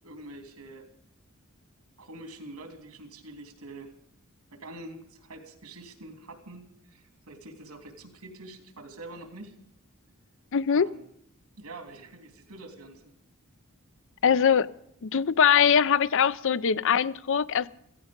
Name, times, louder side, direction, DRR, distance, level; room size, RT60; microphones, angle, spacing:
voice 1, 0.0-0.9 2.0-3.9 4.5-9.5 10.7-11.1 11.6-13.1, right 2 dB, 85° right, 5 dB, 3.3 m, -45 dB
voice 2, 10.5-10.9 14.2-14.7 15.0-17.7, left 7 dB, 60° left, 18 dB, 0.6 m, -22 dB
16.0 x 16.0 x 5.3 m, 0.73 s
head